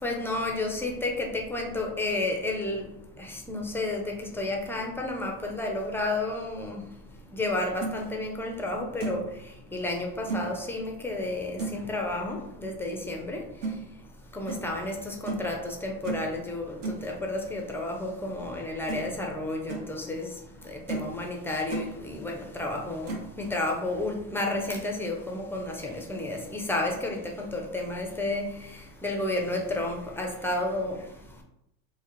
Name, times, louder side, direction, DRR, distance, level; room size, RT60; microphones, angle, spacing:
voice 1, 0.0-31.4, left 2 dB, 5° left, 1 dB, 0.5 m, -32 dB
sound 1, 7.5-7.9 8.5-8.6 9.0-9.3 10.3-10.5 11.6-11.9 13.6-13.8 14.5-14.7 15.2-15.5 16.0-16.3 16.8-17.0 18.4-18.5 18.9-19.2 19.5-19.8 20.4-20.5 20.9-21.1 21.4-21.9 23.0-23.3, right 4 dB, 50° right, 1.2 m, -33 dB
4.7 x 2.2 x 3.0 m, 0.79 s
supercardioid pair, 110°, 42 cm